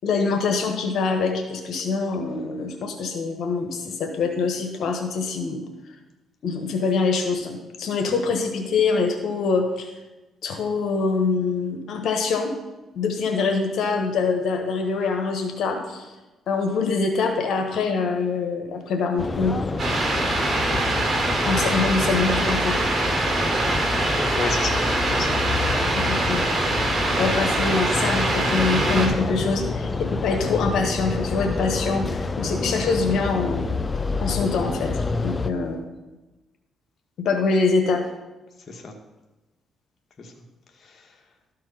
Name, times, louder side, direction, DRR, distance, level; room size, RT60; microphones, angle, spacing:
voice 1, 0.0-5.6 6.4-9.9 10.4-12.5 12.9-16.1 16.5-19.8 21.4-22.8 25.9-26.6 27.2-33.7 34.2-35.9 37.2-38.0, left 4 dB, 70° left, 4 dB, 1.2 m, -24 dB
sound 1, 19.2-35.5, left 3 dB, 25° left, 0.5 m, -28 dB
sound 2, 19.8-29.1, right 2 dB, 35° right, 2.8 m, -24 dB
voice 2, 24.3-25.4 38.7-38.9 40.2-40.3 40.8-41.2, left 4 dB, 45° left, 2 dB, 1.3 m, -33 dB
12.5 x 4.7 x 5.7 m, 1.1 s
cardioid pair, 90°, 0 cm